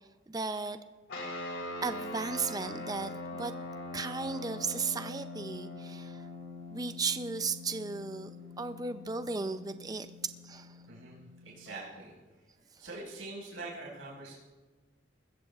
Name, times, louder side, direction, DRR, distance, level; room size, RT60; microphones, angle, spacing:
voice 1, 0.3-0.8 1.8-3.5 3.9-6.3 6.7-10.8 12.7-12.8, right 4 dB, 20° right, 9 dB, 0.5 m, -35 dB
sound 1, 1.1-11.8, left 2 dB, 70° left, 2.4 m, -43 dB
voice 2, 10.9-11.2 11.4-12.1 12.8-14.3, right 2 dB, 85° right, -4 dB, 4.9 m, -43 dB
21.5 x 15.0 x 2.4 m, 1.3 s
head